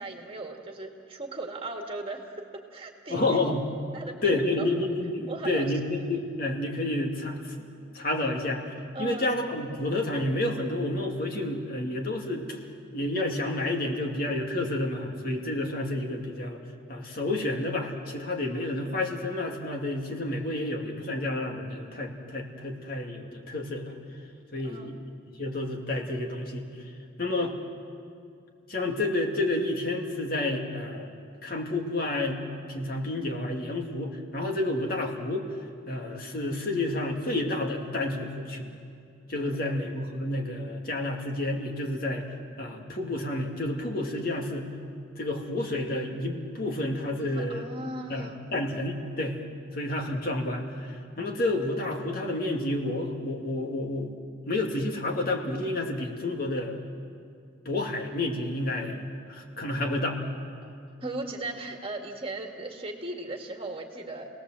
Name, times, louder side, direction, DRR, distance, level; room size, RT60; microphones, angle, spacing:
voice 1, 0.0-2.3 2.7-3.2 3.9-4.7 5.3-5.7 8.9-9.3 24.6-25.0 39.5-39.7 47.2-48.5 51.1-51.3 60.6-60.7 61.0-64.3, right 2 dB, 25° right, 2 dB, 2.1 m, -37 dB
voice 2, 3.1-3.6 4.2-7.7 7.9-8.6 9.0-12.6 12.9-16.6 16.9-23.9 24.5-24.9 25.4-26.6 27.2-27.5 28.7-31.1 31.4-32.4 32.7-35.4 35.9-38.7 39.3-42.2 42.6-44.7 45.2-47.6 48.1-49.4 49.7-54.1 54.4-56.8 57.7-60.2, left 2 dB, 45° left, 1 dB, 2.4 m, -30 dB
30.0 x 18.5 x 7.6 m, 2.4 s
head